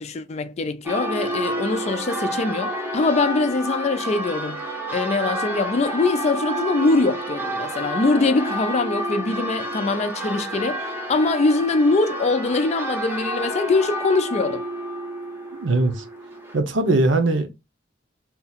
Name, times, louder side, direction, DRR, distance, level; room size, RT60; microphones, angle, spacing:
voice 1, 0.0-4.6 4.9-10.8 11.1-14.6, left 3 dB, 35° left, 0.4 m, -22 dB
Church bell, 0.8-16.6, right 1 dB, 10° right, 0.7 m, -30 dB
voice 2, 15.6-16.0 16.5-17.5, right 2 dB, 75° right, 0.7 m, -20 dB
2.9 x 2.4 x 4.0 m
head